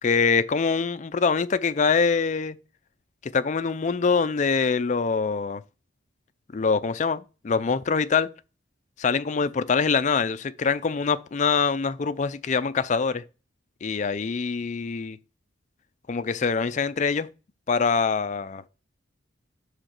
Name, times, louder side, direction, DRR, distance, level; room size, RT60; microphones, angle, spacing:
voice 1, 0.0-2.6 3.2-5.6 6.5-8.3 9.0-13.2 13.8-15.2 16.1-17.3 17.7-18.6, left 5 dB, 40° left, 0.4 m, -24 dB
6.4 x 5.0 x 4.4 m
head